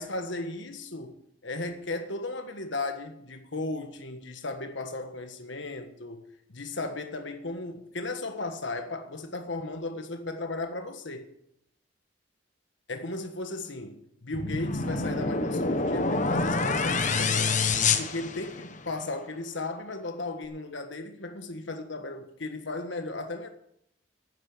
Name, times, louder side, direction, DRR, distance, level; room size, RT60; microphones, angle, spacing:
voice 1, 0.0-6.2 6.5-11.3 12.9-17.6 18.0-23.5, left 2 dB, 70° left, 1.5 m, -36 dB
sound 1, 14.3-18.9, left 4 dB, 40° left, 1.0 m, -27 dB
10.5 x 9.7 x 7.3 m
head